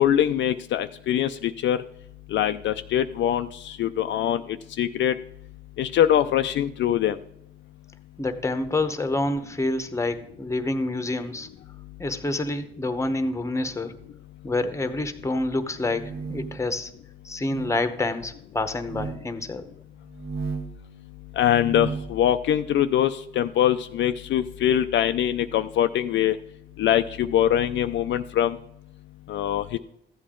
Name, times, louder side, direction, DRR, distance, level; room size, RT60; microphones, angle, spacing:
voice 1, 0.0-1.8 2.3-3.5 3.8-4.4 4.8-5.1 5.8-7.2 21.4-26.4 26.8-28.6 29.3-29.8, left 11 dB, 70° left, 9 dB, 0.5 m, -23 dB
voice 2, 8.2-11.5 12.0-13.9 14.4-16.9 17.2-19.6, left 2 dB, 15° left, 10 dB, 0.9 m, -27 dB
sound 1, 15.7-16.7 17.4-17.8 18.8-19.2 20.1-20.8 21.4-22.2, right 4 dB, 90° right, 1.8 m, -34 dB
14.0 x 8.6 x 3.7 m, 0.78 s
cardioid pair, 90°, 20 cm